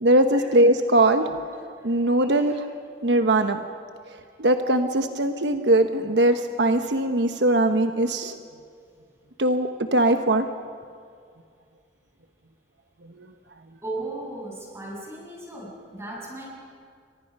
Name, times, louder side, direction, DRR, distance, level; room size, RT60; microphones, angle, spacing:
voice 1, 0.0-1.3 1.8-2.6 3.0-3.6 4.4-8.3 9.4-10.5, right 1 dB, 80° right, 7 dB, 1.1 m, -20 dB
voice 2, 1.8-2.5 13.8-16.5, right 2 dB, 15° right, -3 dB, 7.3 m, -37 dB
29.5 x 24.5 x 5.5 m, 2.2 s
head